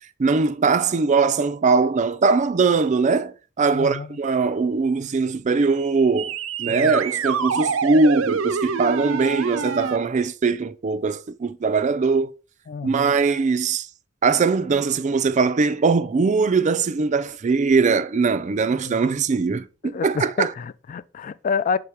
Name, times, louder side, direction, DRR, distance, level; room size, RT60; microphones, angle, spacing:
voice 1, 0.2-12.3 12.8-13.9 14.2-20.5, right 4 dB, 35° right, 0.4 m, -21 dB
voice 2, 3.7-4.1 6.7-6.9 12.7-13.1 18.9-19.0 19.8-21.8, left 5 dB, 40° left, 0.3 m, -28 dB
sound 1, 6.2-10.0, right 6 dB, 85° right, 0.5 m, -26 dB
5.7 x 3.8 x 4.7 m
head